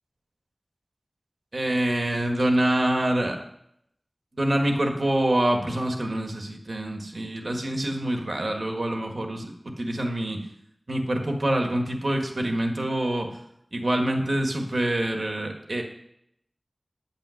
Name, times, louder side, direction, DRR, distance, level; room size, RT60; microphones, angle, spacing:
voice 1, 1.5-3.4 4.3-9.5 9.8-10.4 10.9-13.3 13.7-15.8, right 1 dB, 70° right, 3 dB, 1.7 m, -25 dB
9.1 x 8.8 x 6.5 m, 0.75 s
wide cardioid pair, 55°, 0 cm